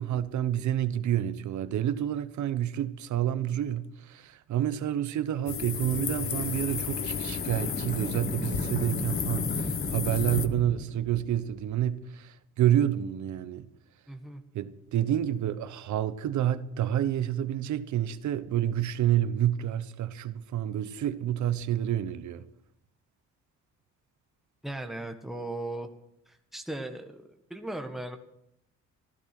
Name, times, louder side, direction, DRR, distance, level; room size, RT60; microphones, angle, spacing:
voice 1, 0.0-13.7 14.5-22.4, right 11 dB, 70° right, 1.0 m, -29 dB
sound 1, 5.5-10.5, left 7 dB, 45° left, 1.0 m, -33 dB
sound 2, 5.7-11.6, left 2 dB, 30° left, 3.0 m, -36 dB
voice 2, 14.1-14.4 24.6-25.9 26.3-28.2, right 1 dB, ahead, 1.6 m, -37 dB
14.5 x 12.5 x 6.0 m
cardioid pair, 90°, 30 cm